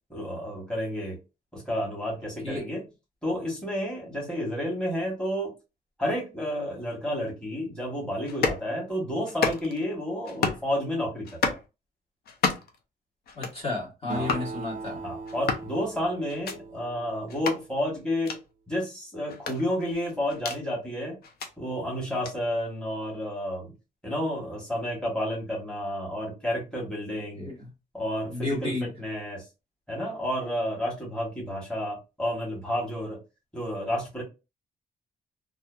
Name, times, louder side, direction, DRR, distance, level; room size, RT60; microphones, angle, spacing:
voice 1, 0.1-1.2 1.5-2.8 3.2-5.5 6.0-11.6 14.1-14.3 15.0-18.4 18.7-21.2 21.6-23.7 24.0-27.5 27.9-29.5 29.9-33.2 33.5-34.2, equal, 5° left, 1.2 m, -31 dB
sound 1, 8.3-8.6 9.3-9.8 10.3-10.7 11.2-11.7 12.3-12.8 13.3-13.6 14.2-14.5 15.3-15.7 16.3-16.6 17.3-17.6 18.2-18.4 19.3-20.6 21.2-21.5 22.2-22.4, left 5 dB, 75° left, 0.6 m, -30 dB
voice 2, 13.3-15.0 27.4-27.5 28.3-28.9, left 2 dB, 35° left, 1.2 m, -32 dB
Acoustic guitar, 14.1-17.9, right 4 dB, 50° right, 0.4 m, -40 dB
2.7 x 2.4 x 2.3 m
cardioid pair, 125°, 16 cm